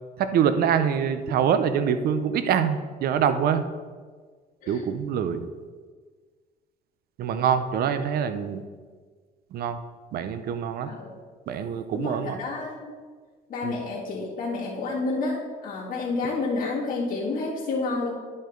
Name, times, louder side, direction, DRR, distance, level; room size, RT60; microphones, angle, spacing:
voice 1, 0.2-3.6 4.7-5.5 7.2-8.6 9.5-9.8 10.1-10.9 11.5-12.4 13.6-13.7, right 8 dB, 65° right, 10 dB, 0.7 m, -25 dB
voice 2, 10.8-11.1 11.9-12.9 13.5-18.2, left 3 dB, 55° left, -7 dB, 2.1 m, -29 dB
10.5 x 5.4 x 3.9 m, 1.5 s
cardioid pair, 110°, 17 cm